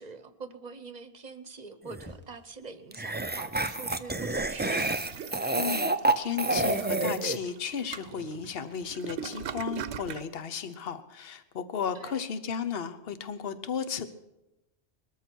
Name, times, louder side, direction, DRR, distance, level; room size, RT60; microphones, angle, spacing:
voice 1, 0.0-5.0 11.9-12.3, right 4 dB, 45° right, 11 dB, 0.9 m, -44 dB
sound 1, 1.9-2.0 2.9-7.4, right 2 dB, 15° right, 0.3 m, -28 dB
sound 2, 2.0-3.1 3.8-4.2 6.2-7.1 8.0-8.3, equal, 10° left, 1.7 m, -48 dB
Toilet flush, 4.1-10.3, right 9 dB, 80° right, 1.0 m, -41 dB
voice 2, 5.5-5.9 6.2-14.1, left 7 dB, 60° left, 11 dB, 1.1 m, -34 dB
21.0 x 13.5 x 4.6 m, 0.96 s
omnidirectional pair, 1.1 m